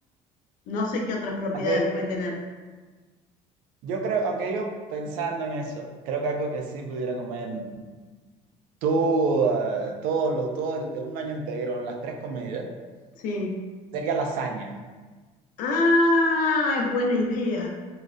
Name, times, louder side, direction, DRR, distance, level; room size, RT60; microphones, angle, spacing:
voice 1, 0.7-2.4 13.2-13.6 15.6-17.7, left 2 dB, 75° left, 1 dB, 0.6 m, -24 dB
voice 2, 3.8-7.7 8.8-12.6 13.9-14.7, right 4 dB, 85° right, 3 dB, 0.4 m, -27 dB
3.9 x 2.0 x 2.4 m, 1.3 s
cardioid pair, 120°, 14 cm